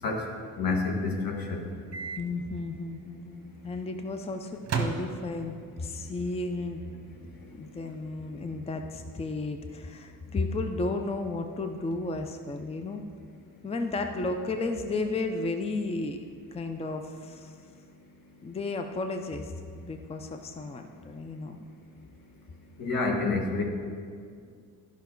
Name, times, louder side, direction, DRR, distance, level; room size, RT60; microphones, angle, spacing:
voice 1, 0.6-1.7 22.8-23.6, left 3 dB, 70° left, 1 dB, 1.6 m, -28 dB
Microwave oven, 1.9-2.2 2.6-2.7 4.6-5.6, right 5 dB, 45° right, 1.1 m, -33 dB
voice 2, 2.2-6.8 7.5-13.0 13.6-16.2 16.5-17.5 18.4-19.5 19.8-21.6, left 3 dB, 15° left, 6 dB, 0.5 m, -33 dB
11.5 x 5.8 x 4.5 m, 2.2 s
cardioid pair, 90°, 36 cm